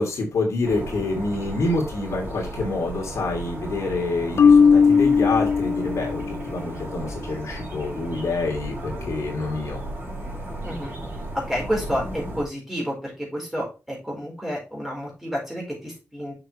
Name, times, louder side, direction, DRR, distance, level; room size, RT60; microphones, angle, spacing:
voice 1, 0.0-9.8, left 2 dB, 70° left, 0 dB, 2.7 m, -27 dB
sound 1, 0.6-12.4, right 1 dB, 40° right, 4.5 m, -35 dB
Marimba xylophone, 4.4-6.4, left 5 dB, 55° left, 0.5 m, -17 dB
voice 2, 11.3-16.3, equal, 5° right, -3 dB, 4.4 m, -30 dB
6.7 x 6.4 x 3.2 m, 0.30 s
wide cardioid pair, 180°, 5 cm